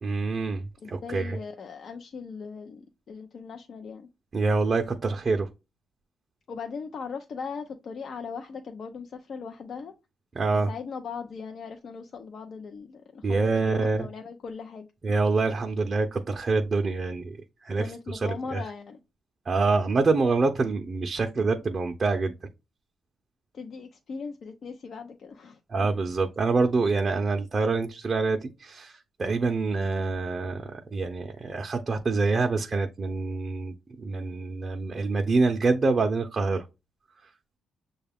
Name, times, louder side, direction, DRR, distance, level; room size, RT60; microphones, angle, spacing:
voice 1, 0.0-1.4 4.3-5.5 10.4-10.7 13.2-14.1 15.0-18.6 19.5-22.3 25.7-36.6, right 3 dB, 35° right, 0.5 m, -26 dB
voice 2, 0.8-4.1 6.5-9.9 10.7-14.9 17.8-19.0 21.3-21.5 23.5-25.9, left 5 dB, 55° left, 0.5 m, -39 dB
6.4 x 2.3 x 3.4 m
cardioid pair, 90°, 0 cm